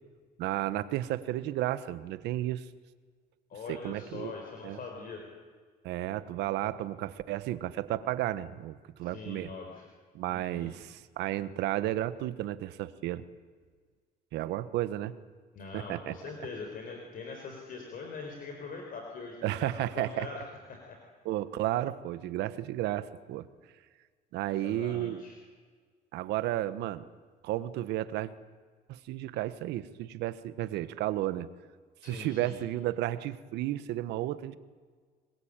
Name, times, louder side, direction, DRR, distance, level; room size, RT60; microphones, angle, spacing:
voice 1, 0.4-2.6 3.7-4.3 4.6-4.8 5.8-9.5 10.1-13.2 14.3-15.1 15.7-16.1 19.4-20.3 21.2-23.4 24.3-25.2 26.1-27.0 27.4-28.3 28.9-31.5 32.0-34.6, right 14 dB, 85° right, 14 dB, 1.4 m, -33 dB
voice 2, 3.5-5.2 9.0-9.8 10.3-10.7 15.5-19.7 20.0-20.4 20.7-21.0 24.5-25.3 32.0-32.6, left 4 dB, 55° left, 2 dB, 4.8 m, -42 dB
25.5 x 21.5 x 9.0 m, 1.5 s
cardioid pair, 110°, 17 cm